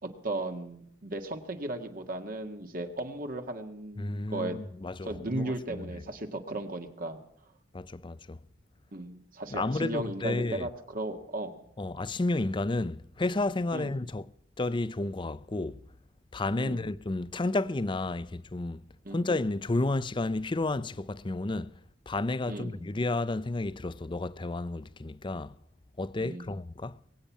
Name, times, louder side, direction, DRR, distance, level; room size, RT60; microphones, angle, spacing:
voice 1, 0.0-4.6 5.0-7.2 8.9-11.6 13.7-14.0 16.6-16.9 19.0-19.3 22.5-22.8 26.2-26.6, right 2 dB, 50° right, 1.7 m, -36 dB
voice 2, 4.0-5.9 7.7-8.4 9.5-10.7 11.8-14.2 14.6-15.8 16.3-18.8 19.1-21.7 22.1-25.5 26.0-27.0, left 2 dB, 25° left, 0.5 m, -31 dB
22.0 x 8.8 x 7.3 m
head